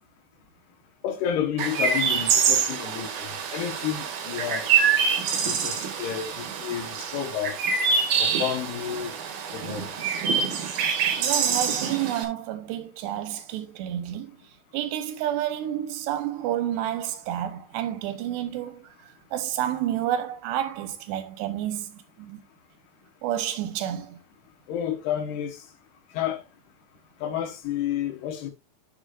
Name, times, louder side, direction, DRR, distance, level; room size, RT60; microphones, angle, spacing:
voice 1, 1.0-4.7 5.4-7.6 8.2-9.1 9.5-10.0 24.7-25.6 26.1-26.4 27.2-28.5, left 9 dB, 75° left, 3.3 m, -30 dB
Chirp tweet, 1.6-12.3, right 6 dB, 65° right, 3.7 m, -25 dB
voice 2, 11.2-14.3 14.7-18.8 19.3-22.4 23.2-24.2, right 11 dB, 85° right, 3.2 m, -30 dB
9.9 x 7.1 x 2.6 m
omnidirectional pair, 4.8 m